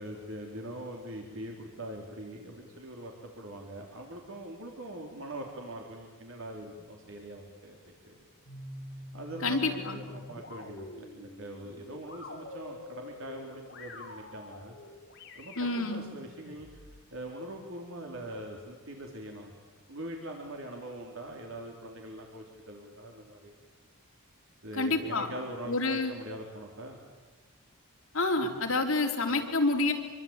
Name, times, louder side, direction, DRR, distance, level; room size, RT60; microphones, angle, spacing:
voice 1, 0.0-8.2 9.1-14.8 15.4-16.7 17.1-19.5 19.9-23.6 24.6-27.0, right 1 dB, 65° right, 1 dB, 3.5 m, -42 dB
sound 1, 8.4-17.0, left 2 dB, 50° left, 4.6 m, -47 dB
voice 2, 9.4-10.0 15.6-16.0 24.7-25.3 25.6-26.1 28.1-29.9, left 3 dB, 65° left, 2 dB, 3.7 m, -28 dB
26.5 x 23.5 x 8.9 m, 1.3 s
head